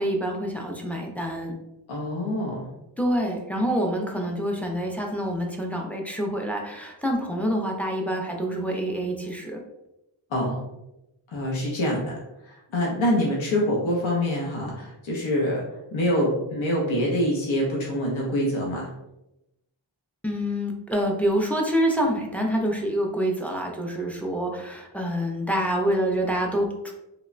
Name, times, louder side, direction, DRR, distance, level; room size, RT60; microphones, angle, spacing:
voice 1, 0.0-1.5 3.0-9.6 20.2-26.9, equal, 5° left, 1 dB, 0.3 m, -26 dB
voice 2, 1.9-2.6 10.3-10.6 11.3-12.1 12.7-15.6 15.9-18.9, equal, 80° left, -3 dB, 0.7 m, -25 dB
2.9 x 2.1 x 2.4 m, 0.90 s
wide cardioid pair, 70°, 46 cm